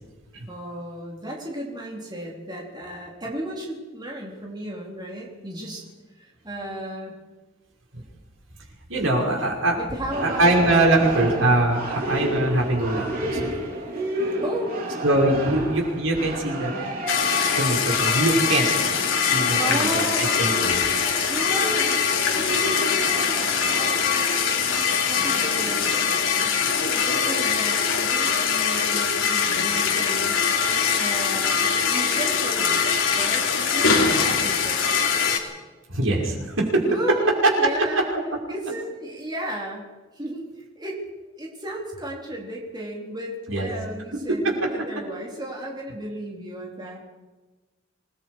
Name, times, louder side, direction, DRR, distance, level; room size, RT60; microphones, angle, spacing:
voice 1, 0.5-5.9 6.1-7.1 9.7-10.5 14.4-14.8 15.4-15.7 19.6-20.3 21.3-22.0 22.3-23.5 23.8-26.6 26.9-30.5 31.0-32.8 33.1-34.9 36.8-38.1 38.5-41.0 41.4-47.0, right 1 dB, 20° right, -2 dB, 4.2 m, -34 dB
voice 2, 8.9-9.8 10.2-13.5 15.0-16.7 17.6-18.7 19.2-20.8 35.9-36.8 38.1-38.2 43.5-43.7 44.3-44.5, right 2 dB, 75° right, -1 dB, 5.6 m, -22 dB
sound 1, 10.1-26.2, right 1 dB, 45° right, 4.9 m, -32 dB
sound 2, 17.1-35.4, left 6 dB, 70° left, 3.3 m, -22 dB
27.0 x 20.5 x 5.0 m, 1.2 s
head